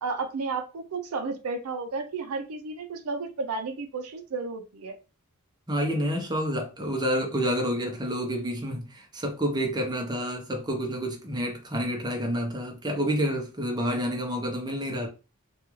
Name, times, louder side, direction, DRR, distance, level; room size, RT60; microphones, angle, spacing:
voice 1, 0.0-5.0, right 4 dB, 80° right, 0.5 m, -32 dB
voice 2, 5.7-15.1, equal, 20° right, 0.7 m, -29 dB
2.5 x 2.3 x 3.0 m
head